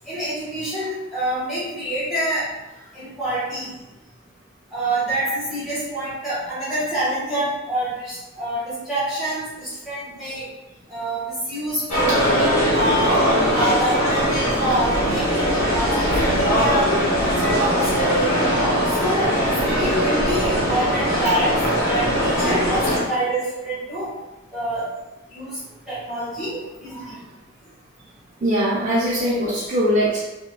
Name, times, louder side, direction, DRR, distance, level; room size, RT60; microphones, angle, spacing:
voice 1, 0.1-2.4 2.9-3.7 4.7-10.4 10.9-12.2 12.7-13.2 13.5-16.8 17.2-18.3 19.0-21.6 21.8-24.1 24.5-24.8 25.3-25.5 25.9-27.1, right 1 dB, ahead, -12 dB, 1.0 m, -26 dB
sound 1, 11.9-23.0, equal, 75° left, 0.9 m, -20 dB
voice 2, 28.4-30.2, equal, 40° right, -7 dB, 0.4 m, -21 dB
3.1 x 2.1 x 2.2 m, 1.1 s
head